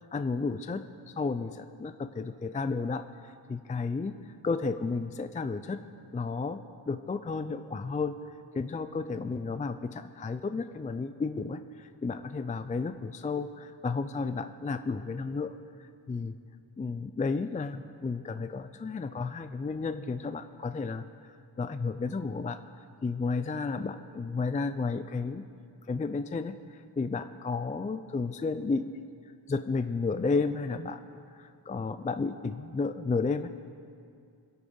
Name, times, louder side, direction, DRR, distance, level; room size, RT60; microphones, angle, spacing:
voice 1, 0.1-5.8 6.1-15.5 15.8-16.4 16.8-22.6 23.0-25.4 25.9-29.1 29.5-33.5, left 4 dB, 20° left, 11 dB, 0.3 m, -33 dB
25.0 x 8.6 x 5.4 m, 2.4 s
wide cardioid pair, 150°, 43 cm